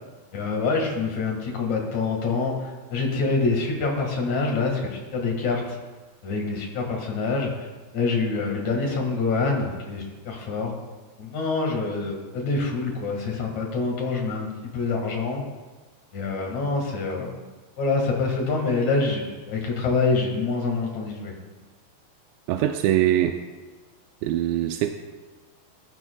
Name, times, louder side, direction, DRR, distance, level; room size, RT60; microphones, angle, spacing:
voice 1, 0.3-5.8 6.2-7.7 7.9-10.7 11.2-15.4 16.1-17.3 17.8-21.3, left 4 dB, 50° left, 0 dB, 2.5 m, -26 dB
voice 2, 22.5-23.4 24.2-24.9, right 12 dB, 90° right, 6 dB, 2.9 m, -22 dB
20.5 x 13.5 x 2.3 m, 1.3 s
omnidirectional pair, 5.0 m